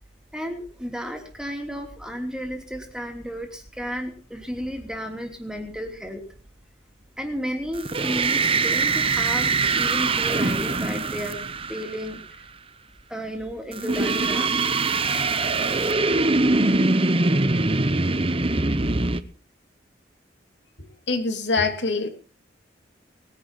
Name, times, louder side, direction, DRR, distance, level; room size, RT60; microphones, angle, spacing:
voice 1, 0.3-6.2 7.2-11.4 11.7-12.4 13.1-14.5 15.1-15.2, equal, 5° right, 3 dB, 2.9 m, -33 dB
sound 1, 7.8-12.2 13.7-19.2, right 3 dB, 30° right, 0.9 m, -23 dB
voice 2, 21.1-22.1, left 3 dB, 65° left, 5 dB, 3.1 m, -24 dB
20.5 x 10.5 x 5.8 m, 0.41 s
head